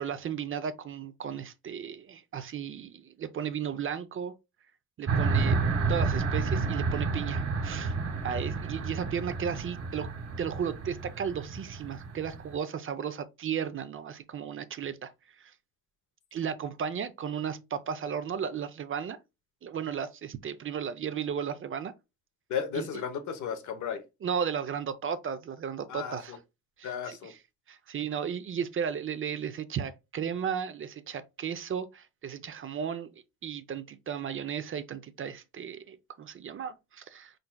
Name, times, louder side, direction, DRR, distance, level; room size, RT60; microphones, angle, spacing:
voice 1, 0.0-4.3 5.0-5.6 5.9-7.9 8.2-10.1 10.4-15.1 15.4-15.5 16.3-19.2 19.6-21.9 22.7-22.9 24.2-26.3 26.8-27.2 27.7-33.1 33.4-37.3, right 7 dB, 45° right, 0.6 m, -34 dB
sound 1, 5.1-12.5, right 4 dB, 60° right, 1.6 m, -30 dB
voice 2, 22.5-24.0 25.9-26.4 26.8-27.3, left 7 dB, 75° left, 1.0 m, -34 dB
4.4 x 3.9 x 2.2 m
cardioid pair, 90°, 30 cm